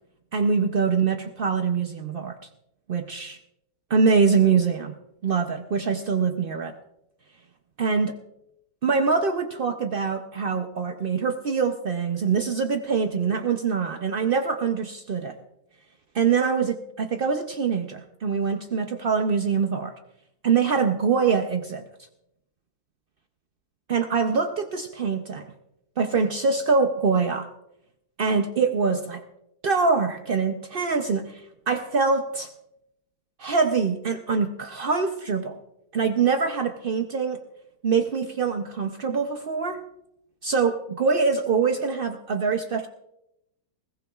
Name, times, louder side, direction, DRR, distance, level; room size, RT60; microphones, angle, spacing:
voice 1, 0.3-2.4 2.9-3.4 3.9-4.9 5.2-6.8 7.8-8.1 8.8-15.3 16.1-19.9 20.4-21.8 23.9-25.5 26.0-27.5 28.2-29.2 29.6-32.5 33.4-35.6 35.9-37.4 37.8-39.8 40.4-42.9, right 5 dB, 75° right, 6 dB, 0.5 m, -24 dB
21.0 x 16.5 x 2.4 m, 0.84 s
omnidirectional pair, 1.9 m